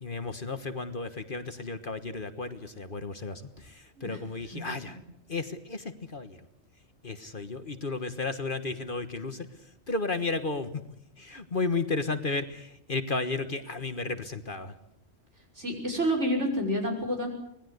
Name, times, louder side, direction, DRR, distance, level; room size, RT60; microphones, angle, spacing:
voice 1, 0.0-5.0 5.3-6.4 7.0-9.5 9.9-10.8 11.2-14.7, left 3 dB, 45° left, 10 dB, 1.5 m, -33 dB
voice 2, 15.6-17.3, equal, 65° right, 1 dB, 6.3 m, -29 dB
25.5 x 19.5 x 8.0 m, 0.75 s
omnidirectional pair, 1.3 m